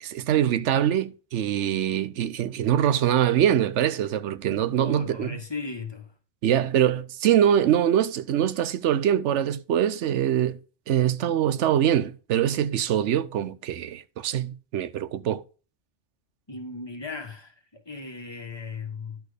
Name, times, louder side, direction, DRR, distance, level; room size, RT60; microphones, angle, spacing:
voice 1, 0.0-5.4 6.4-10.6 10.9-15.4, right 10 dB, 85° right, 1.0 m, -23 dB
voice 2, 4.8-6.1 16.5-19.2, left 4 dB, 25° left, 1.4 m, -37 dB
10.5 x 4.4 x 4.9 m
omnidirectional pair, 1.2 m